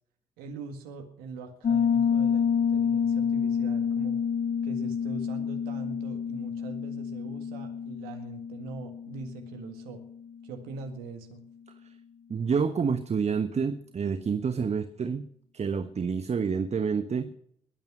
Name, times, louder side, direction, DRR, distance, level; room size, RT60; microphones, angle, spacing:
voice 1, 0.4-4.2 4.6-10.0 10.4-11.4, right 4 dB, 75° right, 6 dB, 1.9 m, -42 dB
Piano, 1.6-10.2, left 7 dB, 50° left, 1.4 m, -28 dB
voice 2, 12.3-15.3 15.5-17.3, right 6 dB, 45° right, 10 dB, 1.3 m, -28 dB
22.0 x 9.2 x 6.2 m, 0.67 s
hypercardioid pair, 40°, 16 cm